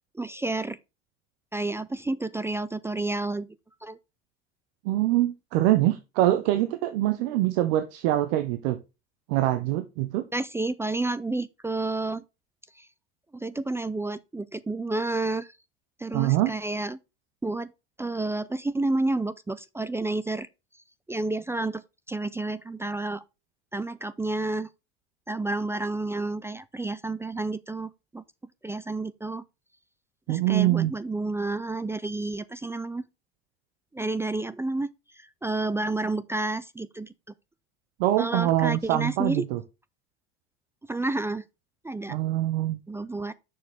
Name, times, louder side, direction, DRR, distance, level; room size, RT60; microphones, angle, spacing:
voice 1, 0.2-0.8 1.5-3.5 3.8-4.0 10.3-12.2 12.8-12.9 13.3-15.5 16.0-17.0 17.4-17.7 18.0-20.5 21.1-21.8 22.1-23.2 23.7-24.7 25.3-28.2 28.6-29.4 30.3-33.0 33.9-34.9 35.4-37.1 38.2-39.4 40.9-41.4 41.8-42.2 42.9-43.3, right 2 dB, 10° right, 0.4 m, -30 dB
voice 2, 4.8-8.8 9.3-10.3 16.1-16.5 30.3-30.9 38.0-39.6 42.1-42.8, right 14 dB, 65° right, 0.9 m, -24 dB
6.7 x 6.4 x 3.5 m
hypercardioid pair, 80°, 31 cm